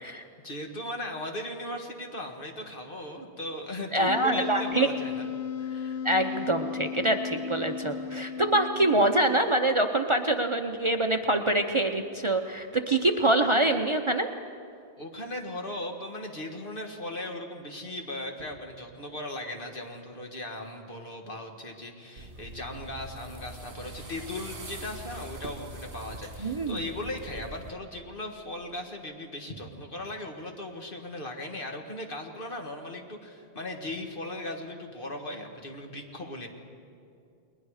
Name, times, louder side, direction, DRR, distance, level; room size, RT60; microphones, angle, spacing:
voice 1, 0.1-5.3 5.6-6.0 15.0-36.5, left 1 dB, 55° left, 2 dB, 2.0 m, -38 dB
voice 2, 3.9-4.9 6.0-14.3 26.4-26.8, right 1 dB, 30° right, 6 dB, 0.7 m, -25 dB
Wind instrument woodwind instrument, 4.1-9.5, left 7 dB, 85° left, 1.0 m, -35 dB
sound 1, 22.2-27.7, right 1 dB, 55° right, 1.9 m, -43 dB
29.5 x 21.0 x 4.9 m, 2.5 s
omnidirectional pair, 1.1 m